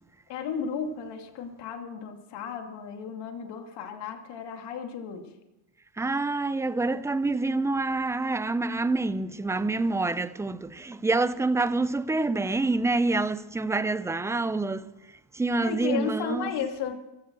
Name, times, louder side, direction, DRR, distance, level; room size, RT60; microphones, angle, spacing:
voice 1, 0.3-5.3 15.6-16.9, left 6 dB, 60° left, 2.6 m, -34 dB
voice 2, 6.0-14.9 15.3-16.6, right 3 dB, 5° right, 0.5 m, -27 dB
16.0 x 13.5 x 6.2 m
cardioid pair, 125°, 46 cm